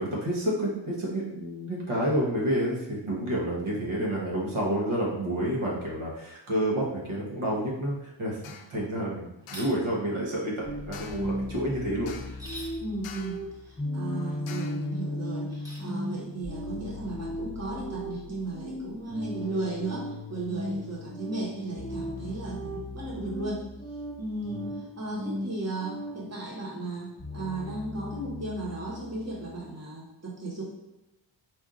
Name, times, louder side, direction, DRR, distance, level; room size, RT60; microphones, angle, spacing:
voice 1, 0.0-10.5 10.9-12.1, right 1 dB, 75° right, -4 dB, 1.3 m, -29 dB
sound 1, 8.4-8.8 9.5-9.9 10.9-11.4 12.1-12.5 13.0-13.5 14.5-14.9, left 7 dB, 80° left, 0.6 m, -45 dB
sound 2, 9.4-9.7 12.3-12.8 15.5-15.9, equal, 10° right, 1.0 m, -43 dB
sound 3, 10.6-26.3 27.2-29.6, left 1 dB, 15° left, 0.8 m, -37 dB
voice 2, 12.8-23.7 24.2-30.6, right 2 dB, 30° right, -5 dB, 1.3 m, -35 dB
4.6 x 2.7 x 3.7 m, 0.93 s
wide cardioid pair, 105°, 49 cm